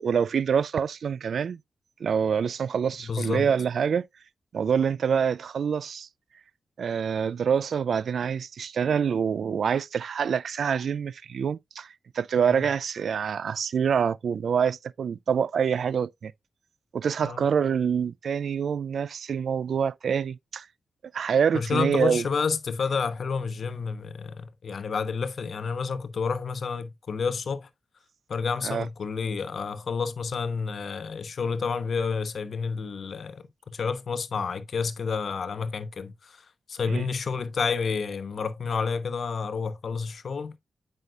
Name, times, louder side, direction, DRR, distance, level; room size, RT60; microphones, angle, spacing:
voice 1, 0.0-1.6 2.0-4.0 4.5-6.1 6.8-16.3 16.9-20.7 21.1-22.2 28.6-28.9 36.9-37.1, right 7 dB, 75° right, 0.3 m, -26 dB
voice 2, 3.0-3.5 12.5-12.6 17.2-17.4 21.5-27.7 28.3-40.6, left 5 dB, 70° left, 1.0 m, -30 dB
9.0 x 5.6 x 2.4 m
cardioid pair, 50°, 0 cm